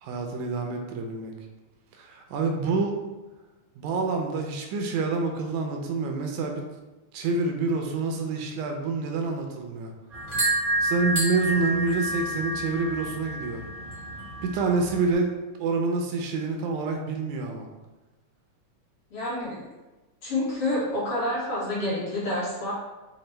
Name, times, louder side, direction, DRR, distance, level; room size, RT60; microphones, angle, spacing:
voice 1, 0.0-1.3 2.0-3.0 3.8-6.6 7.1-9.9 10.8-13.6 14.4-17.7, right 4 dB, 80° right, 3 dB, 1.9 m, -27 dB
sound 1, 10.1-15.1, right 1 dB, 60° right, 0.5 m, -29 dB
voice 2, 19.1-19.6 20.2-22.7, left 1 dB, 55° left, -9 dB, 2.3 m, -28 dB
6.0 x 2.5 x 3.2 m, 1.1 s
omnidirectional pair, 3.4 m